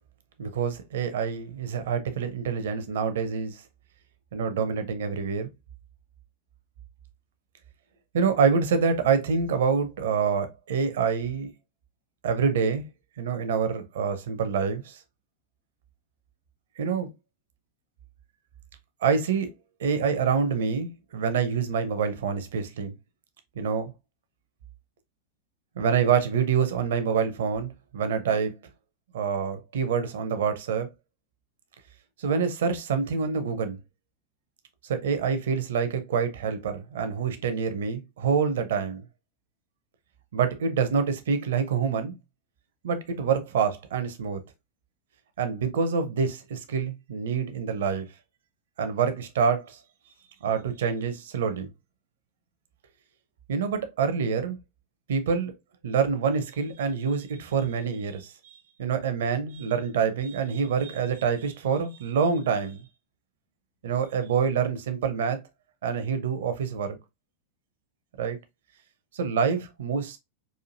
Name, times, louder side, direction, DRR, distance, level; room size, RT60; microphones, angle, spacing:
voice 1, 0.4-3.6 4.3-5.5 8.1-11.5 12.2-12.9 13.2-15.0 16.8-17.1 19.0-19.5 19.8-22.9 23.6-23.9 25.8-28.5 29.1-30.9 32.2-33.8 34.8-39.0 40.3-42.1 42.8-44.4 45.4-48.1 48.8-49.8 50.4-51.7 53.5-54.6 55.1-55.5 55.8-62.8 63.8-65.4 65.8-67.0 68.2-68.4 69.1-70.2, right 6 dB, 60° right, 0.6 m, -26 dB
4.3 x 2.6 x 2.5 m
figure-of-eight pair, 90°, 0 cm